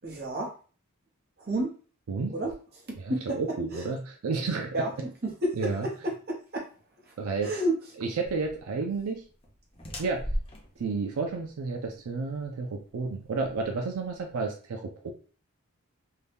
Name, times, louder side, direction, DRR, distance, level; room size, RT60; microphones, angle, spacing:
voice 1, 0.0-0.5 1.4-1.7 2.3-2.6 2.9-3.4 3.7-3.9 4.7-6.7 7.1-7.2 7.4-7.8, right 1 dB, 45° right, -1 dB, 0.9 m, -31 dB
voice 2, 3.0-4.9 5.6-5.9 7.2-7.6 8.0-9.3 10.0-10.3 10.8-15.1, right 4 dB, 80° right, 3 dB, 0.4 m, -31 dB
sound 1, 8.2-14.3, equal, 25° left, 0.5 m, -39 dB
2.7 x 2.2 x 3.4 m, 0.39 s
head